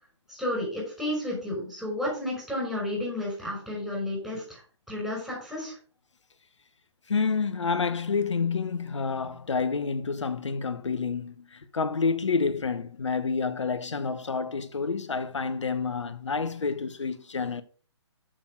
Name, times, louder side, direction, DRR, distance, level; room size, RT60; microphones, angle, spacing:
voice 1, 0.3-4.6 4.9-5.7, left 1 dB, ahead, 5.9 m, -32 dB
voice 2, 7.1-17.6, left 5 dB, 80° left, 1.1 m, -29 dB
7.5 x 7.0 x 5.0 m
figure-of-eight pair, 135°, 15 cm